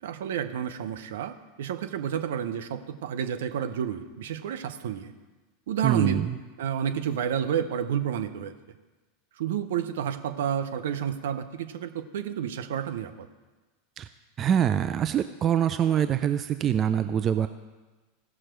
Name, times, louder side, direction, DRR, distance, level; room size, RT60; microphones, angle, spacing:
voice 1, 0.0-5.1 5.7-6.3 6.6-8.5 9.4-13.3, right 9 dB, 70° right, 8 dB, 0.8 m, -30 dB
voice 2, 5.8-6.3 14.0-14.1 14.4-17.5, right 9 dB, 35° right, 10 dB, 0.5 m, -24 dB
16.5 x 6.3 x 4.5 m, 1.2 s
figure-of-eight pair, 85°, 0 cm